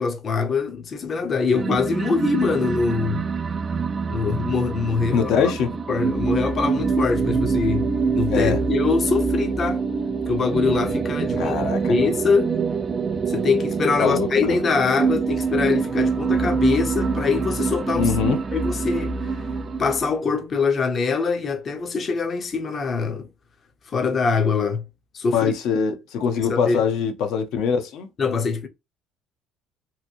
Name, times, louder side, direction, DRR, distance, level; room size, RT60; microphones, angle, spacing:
voice 1, 0.0-3.2 4.1-5.5 5.9-7.9 8.1-9.9 10.3-12.5 13.3-18.1 18.5-19.4 19.8-23.3 23.9-24.8 25.1-25.5 26.5-26.8 28.2-28.7, left 5 dB, 30° left, 0.6 m, -23 dB
sound 1, 1.5-20.1, right 5 dB, 25° right, 0.4 m, -25 dB
voice 2, 5.1-5.7 8.3-8.6 11.4-12.0 14.0-14.6 18.0-18.4 25.3-28.1, left 6 dB, 70° left, 0.8 m, -23 dB
3.0 x 2.6 x 2.6 m
cardioid pair, 145°, 0 cm